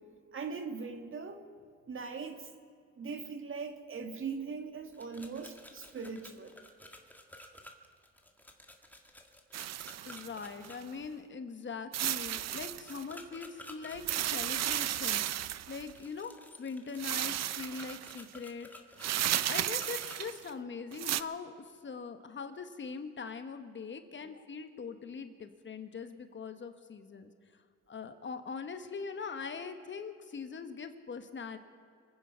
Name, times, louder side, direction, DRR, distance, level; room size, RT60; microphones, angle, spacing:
voice 1, 0.3-1.4 1.9-2.5 3.0-6.5, right 5 dB, 45° right, 6 dB, 1.8 m, -40 dB
sound 1, 4.9-10.8 12.9-15.0 15.8-20.2, left 1 dB, 5° left, 1.8 m, -52 dB
sound 2, 9.5-10.8 11.9-13.0 14.0-15.9 17.0-18.2 19.0-20.5 20.9-21.2, right 12 dB, 60° right, 0.6 m, -34 dB
voice 2, 10.1-15.2 15.7-16.3 16.6-18.7 19.4-21.5 21.8-27.3 27.9-31.6, left 5 dB, 40° left, 9 dB, 1.2 m, -42 dB
26.0 x 9.5 x 5.7 m, 2.2 s
cardioid pair, 90°, 30 cm